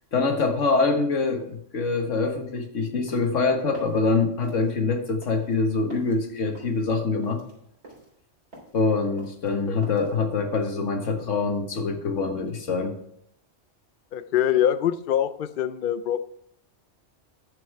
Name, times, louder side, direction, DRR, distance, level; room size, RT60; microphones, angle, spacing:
voice 1, 0.1-7.4 8.7-13.0, left 4 dB, 90° left, 4 dB, 1.7 m, -25 dB
sound 1, 2.8-10.2, right 1 dB, 65° right, 3.7 m, -49 dB
voice 2, 14.1-16.2, left 10 dB, 55° left, 12 dB, 0.6 m, -24 dB
9.7 x 7.0 x 4.7 m, 0.70 s
omnidirectional pair, 1.2 m